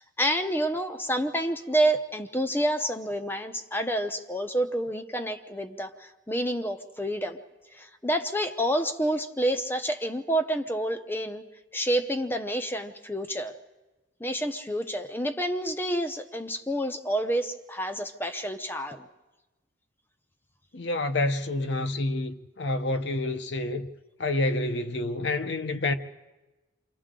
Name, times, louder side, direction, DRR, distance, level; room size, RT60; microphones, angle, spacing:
voice 1, 0.0-7.4 7.7-11.4 11.7-13.5 14.2-19.1, right 1 dB, 10° left, 0.7 m, -28 dB
voice 2, 20.7-23.9 24.2-25.9, left 2 dB, 60° left, 0.8 m, -28 dB
29.0 x 24.5 x 3.8 m
head